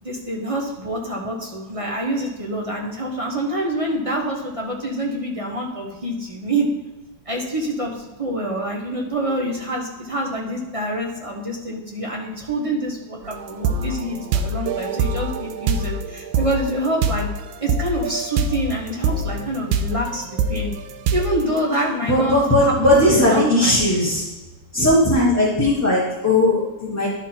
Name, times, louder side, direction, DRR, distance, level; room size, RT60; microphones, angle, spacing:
voice 1, 0.0-6.7 7.3-17.3 17.6-20.7 21.1-23.8, right 1 dB, 25° right, -1 dB, 0.7 m, -26 dB
sound 1, 13.2-18.7 19.0-21.4, right 3 dB, 85° right, 1.4 m, -24 dB
voice 2, 22.1-24.2 24.7-27.1, left 1 dB, 10° left, -7 dB, 0.9 m, -17 dB
11.0 x 4.0 x 4.3 m, 1.1 s
omnidirectional pair, 2.0 m